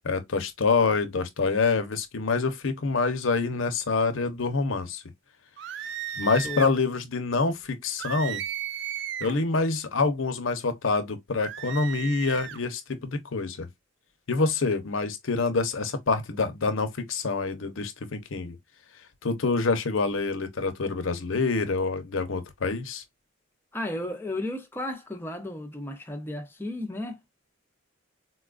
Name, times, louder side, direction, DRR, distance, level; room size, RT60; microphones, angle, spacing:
voice 1, 0.0-5.0 6.2-8.4 9.2-13.7 14.3-18.6 19.2-23.0, left 4 dB, 75° left, 0.7 m, -26 dB
sound 1, 5.6-6.8 8.0-9.4 11.4-12.6, right 10 dB, 60° right, 0.3 m, -35 dB
voice 2, 23.7-27.2, left 1 dB, 10° left, 0.6 m, -34 dB
4.2 x 2.3 x 2.4 m
head